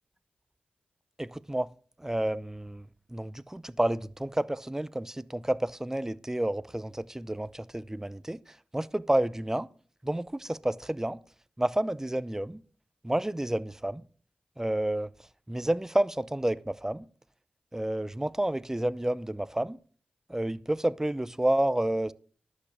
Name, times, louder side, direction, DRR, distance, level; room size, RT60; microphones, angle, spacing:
voice 1, 1.2-1.7 2.0-2.8 3.1-8.4 8.7-9.7 10.0-11.2 11.6-12.6 13.0-14.0 14.6-15.1 15.5-17.1 17.7-19.8 20.3-22.1, right 1 dB, 15° right, 0.7 m, -30 dB
11.5 x 8.7 x 4.9 m
cardioid pair, 50°, 3 cm